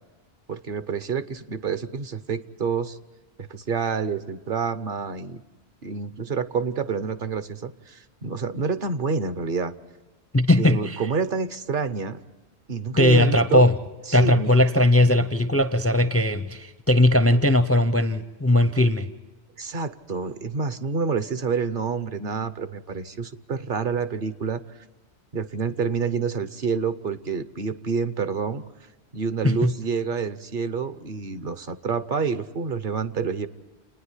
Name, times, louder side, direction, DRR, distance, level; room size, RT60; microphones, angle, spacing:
voice 1, 0.5-3.0 3.4-5.4 5.8-9.7 10.6-12.2 12.7-13.6 14.1-14.5 19.6-24.8 25.3-28.6 29.1-33.5, right 5 dB, 55° right, 12 dB, 1.0 m, -28 dB
voice 2, 10.3-11.0 13.0-13.7 14.1-19.1 29.4-29.7, left 1 dB, 20° left, 11 dB, 0.4 m, -19 dB
29.5 x 10.0 x 9.7 m, 1.2 s
omnidirectional pair, 1.1 m